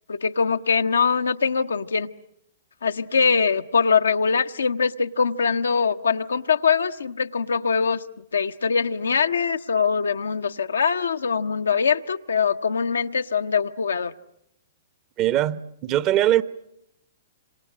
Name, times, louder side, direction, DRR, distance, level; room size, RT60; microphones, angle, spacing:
voice 1, 0.1-2.1 2.8-14.1, left 5 dB, 80° left, 8 dB, 1.0 m, -23 dB
voice 2, 15.2-16.4, right 13 dB, 35° right, 17 dB, 1.0 m, -21 dB
27.0 x 27.0 x 7.6 m, 0.77 s
hypercardioid pair, 115°, 0 cm